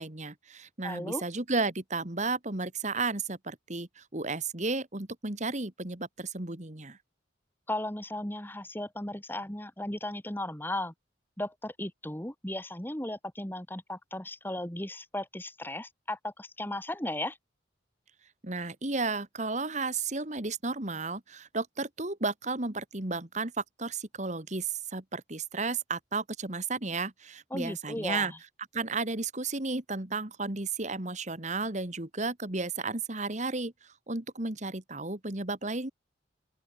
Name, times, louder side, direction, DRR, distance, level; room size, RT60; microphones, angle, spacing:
voice 1, 0.0-7.0 18.4-28.3 28.7-35.9, right 3 dB, 40° right, 2.1 m, -33 dB
voice 2, 0.8-1.2 7.7-10.9 11.4-17.4 27.5-28.4, left 1 dB, 10° left, 1.9 m, -36 dB
open air
head